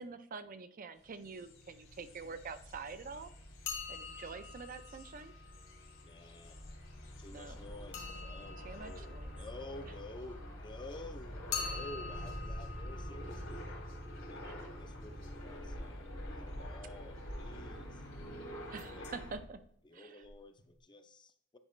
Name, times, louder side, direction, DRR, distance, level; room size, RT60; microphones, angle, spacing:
voice 1, 0.0-3.3 3.9-5.3 7.3-7.6 8.6-9.3 14.4-14.6 18.7-19.6 19.9-20.2, right 4 dB, 45° right, 10 dB, 0.5 m, -46 dB
sound 1, 1.1-19.4, equal, 75° left, 2.2 m, -46 dB
sound 2, 3.6-6.4 7.9-10.6 11.5-15.3 18.8-19.1 19.4-19.5 20.2-20.3 20.6-20.7, left 6 dB, 60° left, 1.3 m, -46 dB
voice 2, 6.0-6.6 7.2-13.6 14.3-14.5 14.8-18.0 18.7-19.1 19.8-21.6, left 2 dB, 25° left, 8 dB, 0.5 m, -51 dB
9.7 x 4.8 x 3.1 m, 0.66 s
head